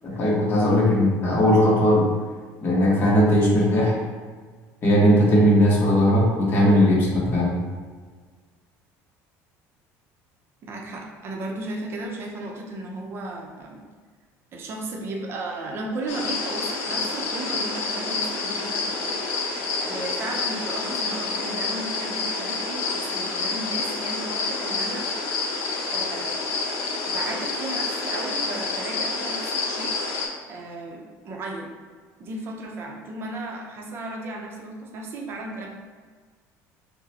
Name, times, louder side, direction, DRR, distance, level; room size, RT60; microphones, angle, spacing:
voice 1, 0.0-2.1 2.6-4.0 4.8-7.6, equal, 30° left, -5 dB, 1.3 m, -18 dB
voice 2, 10.6-13.9 14.5-19.2 19.8-25.2 25.9-26.5 27.1-29.9 30.5-31.7 32.2-35.7, right 2 dB, 35° right, -1 dB, 0.7 m, -35 dB
sound 1, 16.1-30.3, left 3 dB, 65° left, 0.9 m, -28 dB
6.3 x 2.2 x 2.8 m, 1.5 s
cardioid pair, 145°, 7 cm